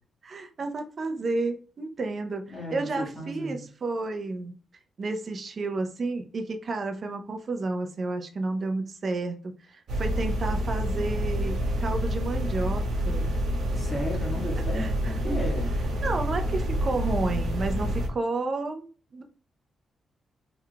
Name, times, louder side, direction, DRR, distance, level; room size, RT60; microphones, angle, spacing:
voice 1, 0.2-4.5 5.0-13.3 14.7-15.4 16.0-18.9 19.1-19.2, right 3 dB, 45° right, 6 dB, 0.5 m, -31 dB
voice 2, 2.5-3.6 13.8-15.7, equal, 15° left, -2 dB, 1.6 m, -34 dB
sound 1, 9.9-18.1, equal, 75° right, 1.1 m, -28 dB
3.5 x 3.5 x 2.2 m, 0.39 s
cardioid pair, 110°, 0 cm